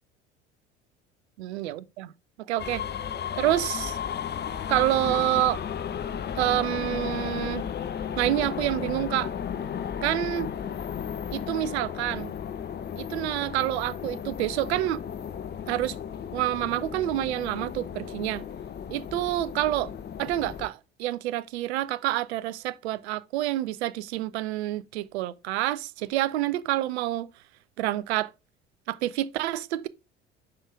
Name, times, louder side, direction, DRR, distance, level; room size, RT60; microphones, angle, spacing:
voice 1, 1.4-2.1 2.5-2.8 3.4-4.0 4.7-5.6 6.4-7.6 8.2-9.3 10.0-10.5 11.3-12.3 13.0-15.0 15.7-16.0 16.3-18.4 18.9-19.9 20.2-27.3 27.8-28.3 28.9-29.9, right 14 dB, 75° right, 0.6 m, -28 dB
sound 1, 2.6-20.7, left 8 dB, 30° left, 0.7 m, -34 dB
5.6 x 5.4 x 3.4 m
figure-of-eight pair, 60°, 33 cm